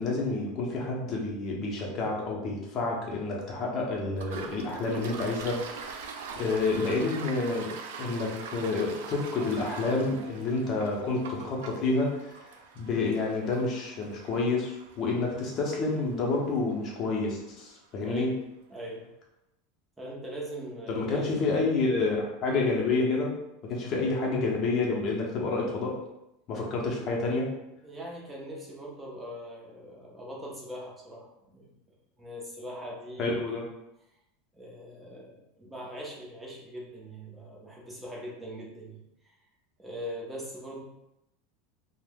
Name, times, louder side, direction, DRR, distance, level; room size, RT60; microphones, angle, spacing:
voice 1, 0.0-7.7 8.0-12.5 12.8-18.4 20.9-26.0 26.5-27.5 33.2-33.6, left 3 dB, 30° left, -2 dB, 0.7 m, -29 dB
Toilet flush, 4.1-17.5, right 5 dB, 85° right, 0.3 m, -43 dB
voice 2, 18.0-18.4 18.7-19.1 20.0-21.7 27.8-31.7 32.2-33.4 34.5-39.3 39.8-40.8, equal, 5° right, -4 dB, 0.6 m, -41 dB
2.6 x 2.0 x 3.5 m, 0.87 s
supercardioid pair, 160°, 0 cm